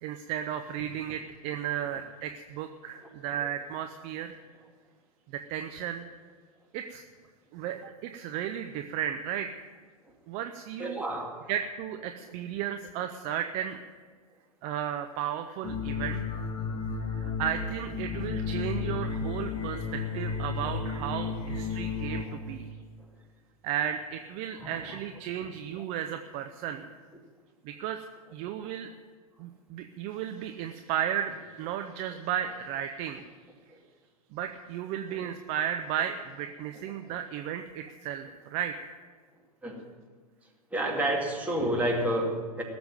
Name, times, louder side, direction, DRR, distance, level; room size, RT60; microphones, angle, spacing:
voice 1, 0.0-4.4 5.3-6.0 6.7-7.0 7.5-9.5 10.3-11.1 11.5-13.8 14.6-16.4 16.9-22.7 23.6-26.8 27.6-28.0 28.3-28.9 29.4-33.2 34.3-38.9, right 9 dB, 35° right, 7 dB, 0.7 m, -34 dB
voice 2, 10.8-11.5 24.6-24.7 25.4-25.5 25.8-25.9 35.2-35.3 39.6-39.8 40.7-42.6, right 1 dB, 5° right, -1 dB, 2.5 m, -30 dB
sound 1, 15.6-22.2, left 5 dB, 20° left, 2.4 m, -33 dB
17.5 x 7.1 x 9.3 m, 1.5 s
figure-of-eight pair, 95°, 20 cm